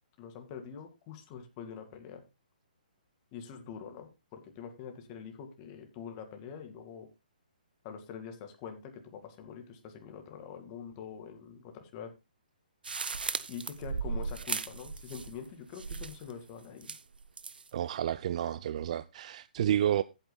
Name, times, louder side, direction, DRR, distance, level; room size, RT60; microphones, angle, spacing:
voice 1, 0.2-2.2 3.3-7.1 7.8-12.1 13.5-16.9, left 7 dB, 30° left, 2.3 m, -45 dB
sound 1, 12.8-15.5 15.7-16.3 16.8-17.7, right 4 dB, 90° right, 0.8 m, -37 dB
voice 2, 17.7-20.0, right 10 dB, 50° right, 0.4 m, -30 dB
15.0 x 8.8 x 2.3 m
hypercardioid pair, 150°, 5 cm